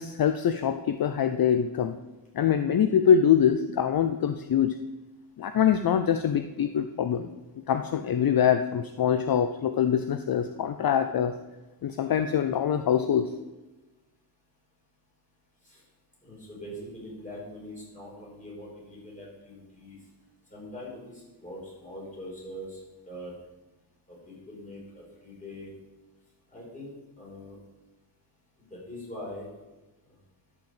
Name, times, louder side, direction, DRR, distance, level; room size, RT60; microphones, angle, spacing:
voice 1, 0.0-2.0 2.3-4.8 5.4-7.3 7.7-11.3 11.8-13.3, left 8 dB, 60° left, 9 dB, 0.6 m, -24 dB
voice 2, 16.2-20.0 20.5-22.8 23.1-23.3 24.1-25.7 26.5-27.6 28.7-29.4, left 1 dB, 20° left, -4 dB, 4.8 m, -42 dB
12.0 x 5.9 x 7.2 m, 1.1 s
wide cardioid pair, 160°, 41 cm